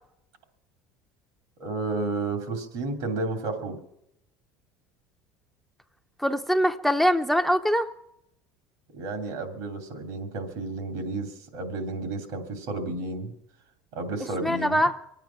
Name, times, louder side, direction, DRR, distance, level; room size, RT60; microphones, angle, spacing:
voice 1, 1.6-3.8 8.9-13.3 13.9-14.8, right 3 dB, 75° right, 6 dB, 3.0 m, -32 dB
voice 2, 6.2-7.9 14.4-14.9, equal, ahead, 6 dB, 0.6 m, -23 dB
24.0 x 9.1 x 5.9 m, 0.79 s
supercardioid pair, 100°, 7 cm